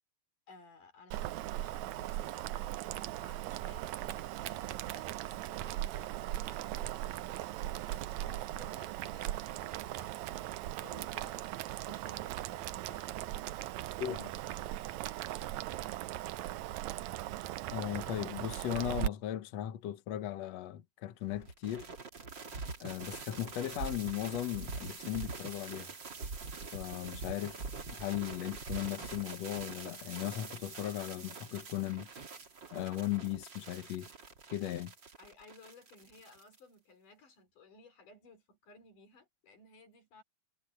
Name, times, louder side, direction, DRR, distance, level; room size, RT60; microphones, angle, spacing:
voice 1, 0.5-7.3 7.8-13.2 35.2-40.2, left 3 dB, 90° left, 6.4 m, -58 dB
Boiling, 1.1-19.1, right 14 dB, 75° right, 1.9 m, -39 dB
voice 2, 14.0-14.3 17.7-21.9 22.8-25.9 26.7-27.6 27.9-32.1 32.7-34.1 34.5-34.9, left 12 dB, 65° left, 2.1 m, -37 dB
sound 1, 21.3-36.6, right 4 dB, 35° right, 2.9 m, -44 dB
omnidirectional pair, 3.6 m